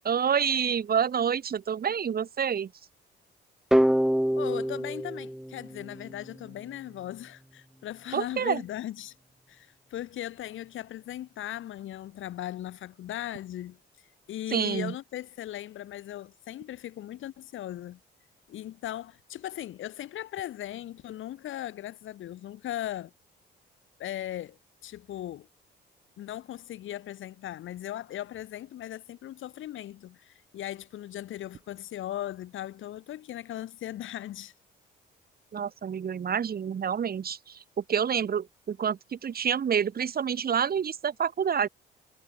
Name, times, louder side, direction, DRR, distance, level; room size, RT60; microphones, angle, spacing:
voice 1, 0.0-2.7 8.1-8.6 14.5-14.9 35.5-37.4 37.8-41.7, right 7 dB, 50° right, 2.9 m, -28 dB
sound 1, 3.7-6.5, equal, ahead, 1.5 m, -26 dB
voice 2, 4.4-9.1 9.5-13.8 14.3-18.0 18.5-23.1 24.0-25.5 26.2-34.5, left 12 dB, 80° left, 7.0 m, -38 dB
cardioid pair, 90°, 20 cm